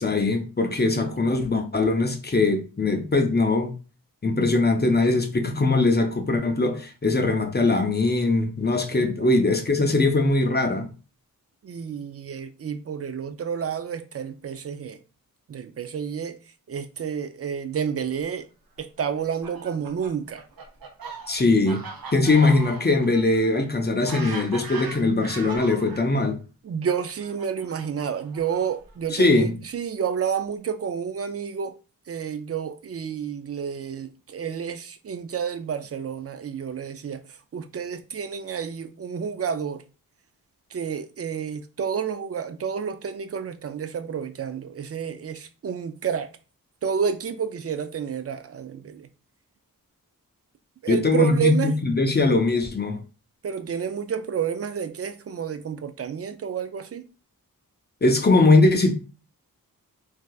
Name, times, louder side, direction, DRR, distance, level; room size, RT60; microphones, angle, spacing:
voice 1, 0.0-3.7 4.2-10.9 21.3-21.8 22.1-26.4 29.1-29.5 50.9-53.0 58.0-58.9, left 2 dB, 30° left, 0.6 m, -21 dB
voice 2, 11.6-15.0 15.5-16.4 16.7-18.5 18.8-20.4 26.6-31.8 32.1-37.2 37.5-39.8 40.7-46.3 46.8-49.1 50.8-51.8 53.4-57.0, right 7 dB, 45° right, 0.4 m, -30 dB
Fowl, 19.1-26.1 26.9-28.9, right 4 dB, 80° right, 0.7 m, -39 dB
3.3 x 2.7 x 2.3 m
wide cardioid pair, 95°, 35 cm